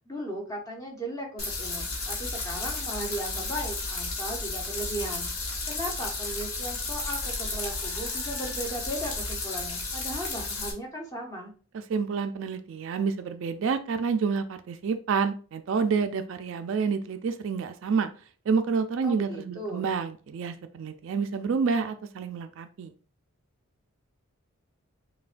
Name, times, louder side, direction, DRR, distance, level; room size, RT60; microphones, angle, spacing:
voice 1, 0.1-11.5 19.0-19.9, right 1 dB, 15° left, 0 dB, 0.8 m, -37 dB
sound 1, 1.4-10.7, left 3 dB, 70° left, 1.0 m, -33 dB
voice 2, 11.7-18.1 18.5-22.9, right 5 dB, 60° right, 9 dB, 0.3 m, -28 dB
5.5 x 2.2 x 2.5 m, 0.39 s
head